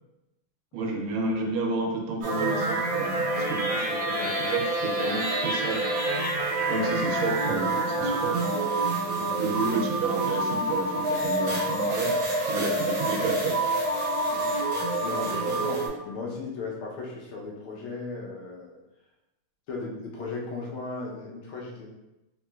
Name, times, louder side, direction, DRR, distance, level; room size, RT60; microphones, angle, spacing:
voice 1, 0.7-5.9 6.7-8.5 9.4-13.6, right 3 dB, 80° right, 1 dB, 1.4 m, -31 dB
sound 1, 2.2-15.9, right 2 dB, 65° right, 1.4 m, -27 dB
voice 2, 9.2-9.5 12.8-12.9 14.3-14.6 15.0-18.7 19.7-21.9, left 3 dB, 80° left, -2 dB, 1.6 m, -36 dB
3.6 x 3.0 x 2.2 m, 0.96 s
omnidirectional pair, 2.3 m